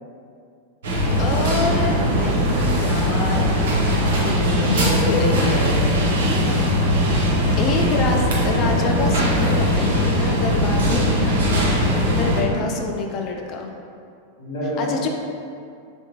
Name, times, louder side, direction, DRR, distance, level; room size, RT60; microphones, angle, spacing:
sound 1, 0.8-12.4, equal, 60° right, 0.5 m, -20 dB
voice 1, 1.2-3.7 4.2-5.6 7.6-13.7 14.8-15.1, left 4 dB, 35° left, 2 dB, 0.4 m, -27 dB
voice 2, 3.9-6.5 10.8-11.0 12.4-12.7 14.4-15.1, left 1 dB, 65° left, -10 dB, 1.3 m, -27 dB
3.3 x 2.8 x 2.7 m, 2.4 s
figure-of-eight pair, 90°, 0 cm